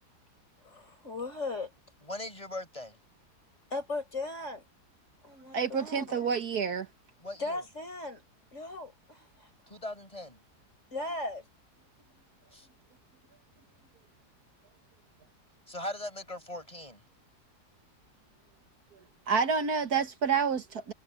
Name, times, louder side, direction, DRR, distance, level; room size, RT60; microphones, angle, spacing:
voice 1, 0.6-1.7 3.7-4.6 5.2-6.0 7.4-8.2 8.5-9.5 10.9-11.4, left 2 dB, 45° left, 5.8 m, -37 dB
voice 2, 2.1-3.0 6.1-6.2 7.2-7.6 9.7-10.4 12.5-12.7 15.7-17.0, left 1 dB, 20° left, 7.1 m, -40 dB
voice 3, 5.5-6.9 19.3-20.9, right 6 dB, 70° right, 1.9 m, -28 dB
omnidirectional pair, 1.7 m